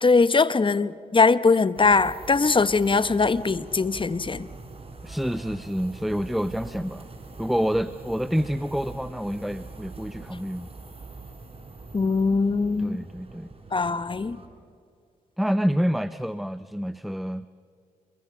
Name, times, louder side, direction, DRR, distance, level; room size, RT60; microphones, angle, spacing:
voice 1, 0.0-4.5 11.9-13.0 13.7-14.4, left 4 dB, 30° left, 15 dB, 1.0 m, -21 dB
sound 1, 1.7-14.5, right 3 dB, 40° right, 4.3 m, -43 dB
voice 2, 5.0-7.1 7.4-10.7 12.8-13.5 15.4-17.5, equal, ahead, 14 dB, 0.7 m, -27 dB
27.5 x 22.5 x 5.7 m, 2.2 s
supercardioid pair, 50°, 16 cm